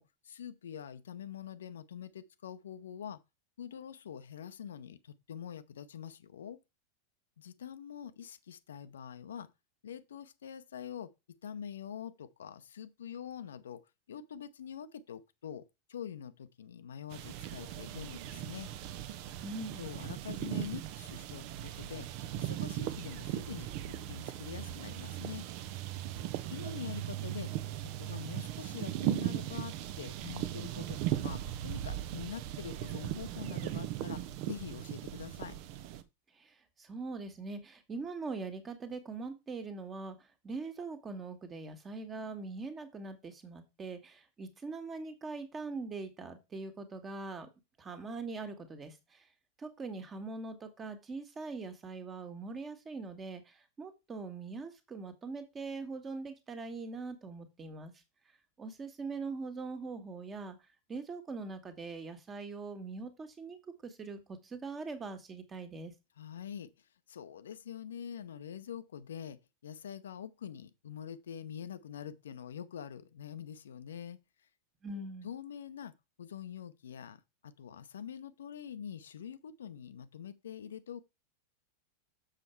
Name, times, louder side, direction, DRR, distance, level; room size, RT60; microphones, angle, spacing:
voice 1, 0.0-3.2 3.6-6.6 7.4-9.5 9.8-18.7 19.8-22.1 22.4-23.7 24.1-25.5 26.5-27.5 27.8-35.6 66.2-74.5 74.9-81.0, left 8 dB, 65° left, 0.7 m, -45 dB
sound 1, 17.1-36.0, right 12 dB, 45° right, 0.9 m, -38 dB
voice 2, 19.4-19.8 36.3-47.5 47.8-49.3 49.6-57.9 58.6-60.6 60.9-65.9 74.8-75.3, right 3 dB, 20° right, 1.8 m, -42 dB
7.4 x 6.7 x 4.6 m
figure-of-eight pair, 90°, 0 cm